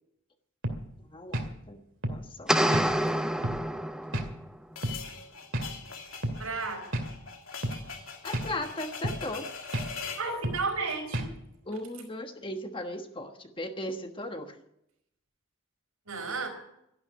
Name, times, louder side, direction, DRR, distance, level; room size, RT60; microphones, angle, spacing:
sound 1, 0.6-0.8 1.3-1.5 2.0-2.2 2.7-2.9 3.4-3.6 4.1-4.3 4.8-5.0 5.5-5.7 6.2-6.4 6.9-7.1 7.6-7.8 8.3-8.5 9.0-9.2 9.7-9.9 10.4-10.6 11.1-11.3, right 1 dB, 60° right, 2.3 m, -31 dB
voice 1, 1.1-2.9 8.2-9.5 11.6-14.6, left 1 dB, 25° left, 6 dB, 1.3 m, -37 dB
sound 2, 2.5-4.4, equal, 5° right, 0.7 m, -27 dB
sound 3, 4.8-10.3, left 5 dB, 70° left, 2.9 m, -42 dB
voice 2, 6.4-7.1 7.7-7.8 10.1-11.3 16.1-16.5, right 4 dB, 85° right, 3 dB, 4.8 m, -33 dB
12.5 x 11.5 x 9.0 m, 0.78 s
head